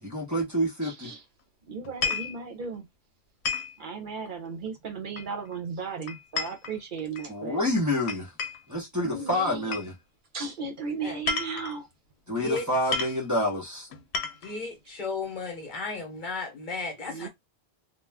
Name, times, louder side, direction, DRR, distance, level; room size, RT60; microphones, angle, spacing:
voice 1, 0.0-1.1 7.3-8.3 8.7-9.9 12.3-13.9, left 1 dB, 20° right, 0.7 m, -28 dB
voice 2, 0.8-1.2 1.7-2.9 3.8-7.7 9.0-9.8 10.3-11.9 17.1-17.3, right 5 dB, 55° right, 0.7 m, -36 dB
sound 1, 1.8-2.4 3.5-3.8 5.2-5.6 6.1-7.3 8.1-8.7 9.7-9.9 11.1-11.8 12.6-12.7 12.9-13.2 13.9-14.6, left 4 dB, 90° left, 0.9 m, -31 dB
voice 3, 14.4-17.3, left 4 dB, 50° left, 1.0 m, -34 dB
2.4 x 2.2 x 3.3 m
omnidirectional pair, 1.1 m